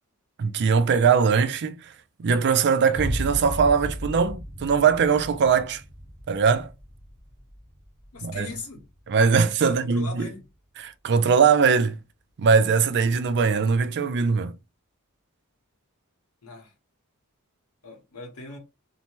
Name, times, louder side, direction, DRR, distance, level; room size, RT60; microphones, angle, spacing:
voice 1, 0.4-1.8 2.2-5.8 6.3-6.7 8.2-8.5 9.1-10.3 10.8-12.0 12.4-14.6, right 5 dB, 50° right, 0.4 m, -21 dB
sound 1, 2.9-10.3, equal, 30° left, 0.7 m, -36 dB
voice 2, 8.1-8.8 9.6-10.4 16.4-16.7 17.8-18.6, left 3 dB, 80° left, 1.1 m, -39 dB
2.7 x 2.1 x 3.0 m
head